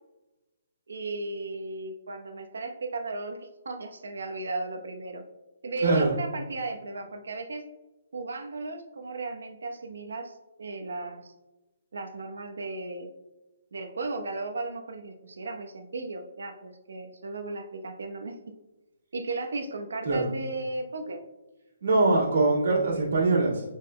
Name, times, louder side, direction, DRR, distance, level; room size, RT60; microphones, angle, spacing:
voice 1, 0.9-5.2 5.6-7.6 8.1-11.3 11.9-13.1 13.7-18.3 19.1-21.2 22.3-23.0, right 3 dB, 80° right, 5 dB, 0.9 m, -35 dB
voice 2, 5.8-6.1 20.0-20.3 21.8-23.6, right 2 dB, 55° right, -9 dB, 2.0 m, -23 dB
9.4 x 4.8 x 2.2 m, 1.0 s
hypercardioid pair, 175°, 0 cm